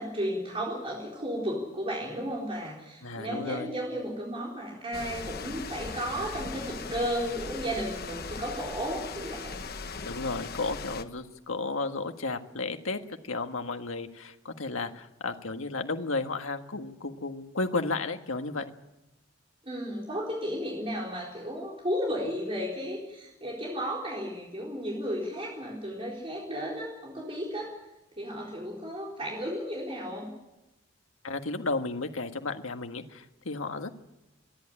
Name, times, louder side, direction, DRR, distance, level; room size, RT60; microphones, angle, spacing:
voice 1, 0.0-9.6 19.6-27.7 28.2-30.3, equal, 25° right, -3 dB, 4.2 m, -34 dB
voice 2, 3.0-3.7 10.0-18.6 31.2-33.9, left 3 dB, 85° left, 6 dB, 1.6 m, -33 dB
sound 1, 4.9-11.0, left 4 dB, 50° left, 1.1 m, -39 dB
26.5 x 11.5 x 10.0 m, 0.96 s
head